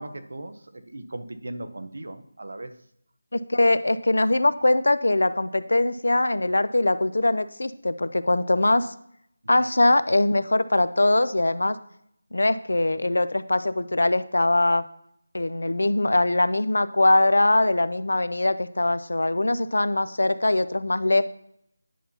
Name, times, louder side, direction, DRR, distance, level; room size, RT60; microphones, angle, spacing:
voice 1, 0.0-2.7 9.6-9.7, right 1 dB, 55° right, 9 dB, 0.7 m, -38 dB
voice 2, 3.3-8.9 9.5-11.8 12.3-14.8 15.3-21.2, left 2 dB, 90° left, 14 dB, 0.5 m, -22 dB
10.0 x 5.5 x 2.8 m, 0.71 s
figure-of-eight pair, 180°, 0 cm